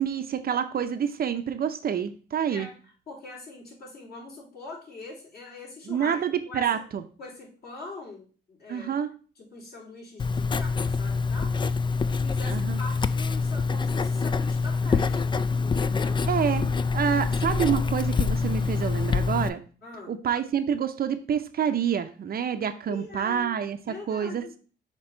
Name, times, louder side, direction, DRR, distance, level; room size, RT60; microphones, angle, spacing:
voice 1, 0.0-2.7 5.9-7.0 8.7-9.1 12.5-12.8 16.3-16.6 16.9-19.6 20.1-23.8 24.1-24.6, right 8 dB, 50° right, 8 dB, 0.6 m, -27 dB
voice 2, 2.5-6.2 6.5-6.7 7.2-9.0 9.4-11.8 12.2-16.2 19.8-20.2 22.9-23.6 23.9-24.5, left 3 dB, 50° left, -4 dB, 3.5 m, -42 dB
Writing, 10.2-19.5, left 4 dB, 25° left, 0.3 m, -26 dB
6.0 x 3.0 x 5.4 m, 0.39 s
cardioid pair, 90°, 20 cm